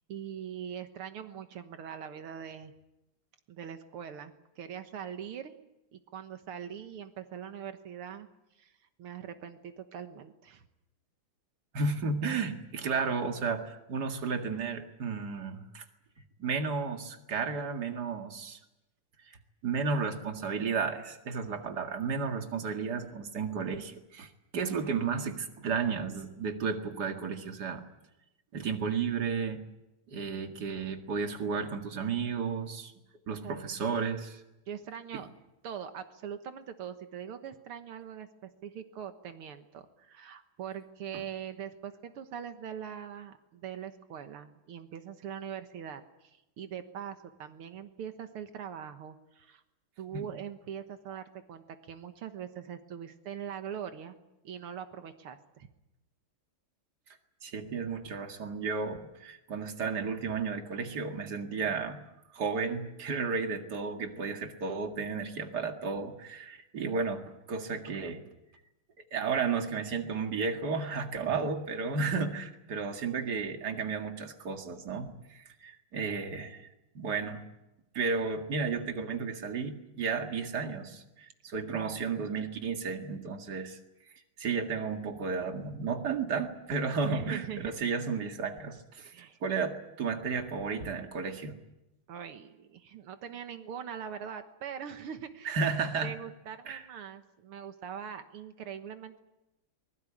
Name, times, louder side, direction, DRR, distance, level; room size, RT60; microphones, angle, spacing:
voice 1, 0.1-2.7 3.5-5.5 5.9-10.7 33.4-33.6 34.7-35.3 35.6-49.6 50.0-54.2 54.4-55.7 71.2-71.5 81.6-82.1 87.0-87.7 89.0-89.4 92.1-95.6 96.0-99.2, right 8 dB, 85° right, 8 dB, 2.2 m, -42 dB
voice 2, 11.7-15.8 16.4-18.6 19.6-27.9 28.5-29.6 30.1-32.9 33.3-34.4 35.1-35.2 50.1-50.3 57.4-62.0 62.3-68.2 69.1-76.7 76.9-77.4 77.9-83.8 84.4-91.5 95.4-96.1 96.7-96.8, right 5 dB, 50° right, 5 dB, 2.5 m, -33 dB
24.0 x 21.0 x 8.6 m, 0.93 s
omnidirectional pair, 2.3 m